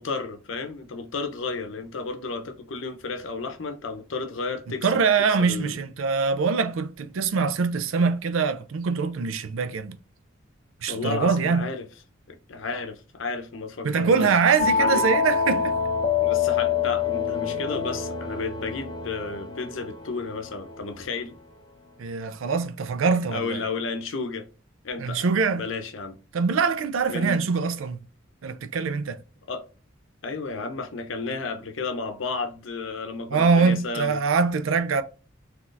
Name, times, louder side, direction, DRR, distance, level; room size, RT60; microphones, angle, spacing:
voice 1, 0.0-5.0 5.3-5.8 10.9-11.9 12.3-14.3 14.8-15.0 16.2-21.4 23.3-24.5 24.8-26.2 27.1-27.4 29.5-29.7 30.2-34.2, left 4 dB, 75° left, 0.7 m, -32 dB
voice 2, 4.8-10.0 10.8-11.7 13.8-15.8 22.0-23.6 25.0-25.6 26.3-28.0 28.4-29.2 33.3-35.0, right 5 dB, 80° right, 0.4 m, -23 dB
sound 1, 14.6-21.1, left 6 dB, 20° left, 0.6 m, -26 dB
3.9 x 2.9 x 2.4 m
head